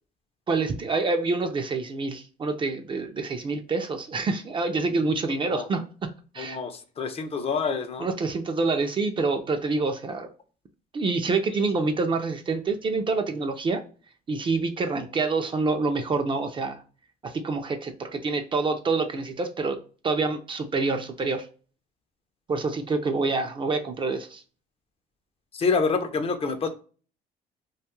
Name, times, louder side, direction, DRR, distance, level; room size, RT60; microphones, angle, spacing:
voice 1, 0.5-5.8 6.3-6.6 8.0-10.3 10.9-13.8 14.3-16.8 17.2-19.8 20.0-21.5 22.5-24.4, right 3 dB, 30° right, 0.4 m, -27 dB
voice 2, 6.4-8.1 25.5-26.7, left 4 dB, 35° left, 0.5 m, -27 dB
2.5 x 2.3 x 2.9 m
cardioid pair, 110°, 17 cm